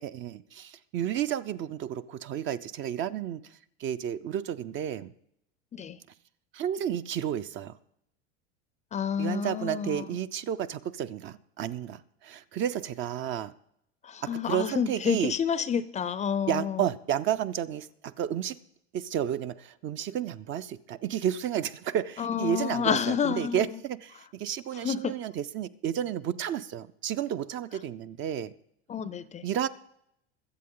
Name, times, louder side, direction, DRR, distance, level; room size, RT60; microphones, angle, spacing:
voice 1, 0.0-3.4 3.8-5.1 6.5-7.7 9.2-13.5 14.3-15.3 16.5-18.6 18.9-28.5 29.4-29.7, right 10 dB, 35° right, 13 dB, 0.6 m, -31 dB
voice 2, 8.9-10.1 14.0-16.9 22.2-23.8 24.7-25.1 28.9-29.4, left 7 dB, 20° left, 16 dB, 0.5 m, -29 dB
22.5 x 7.7 x 3.8 m, 0.73 s
supercardioid pair, 115°, 33 cm